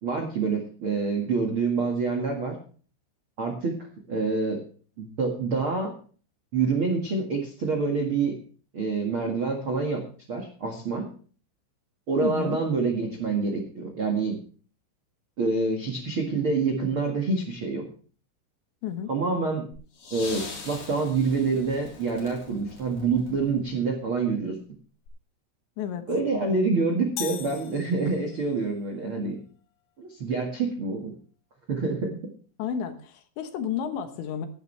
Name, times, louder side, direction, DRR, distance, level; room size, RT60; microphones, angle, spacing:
voice 1, 0.0-2.5 3.4-3.8 4.1-4.6 5.0-5.9 6.5-8.3 8.7-10.0 10.3-11.0 12.1-14.3 15.4-17.8 19.1-19.6 20.1-24.6 26.1-29.4 30.0-31.1 31.7-32.1, right 4 dB, 90° right, 3 dB, 1.1 m, -26 dB
voice 2, 12.2-12.6 18.8-19.1 25.8-26.1 32.6-34.5, left 8 dB, 70° left, 7 dB, 3.2 m, -31 dB
sound 1, 19.7-23.9 25.1-25.2, left 4 dB, 45° left, 5.4 m, -42 dB
sound 2, 27.2-28.6, left 12 dB, 90° left, 3.7 m, -38 dB
16.0 x 12.0 x 3.3 m, 0.41 s
omnidirectional pair, 5.9 m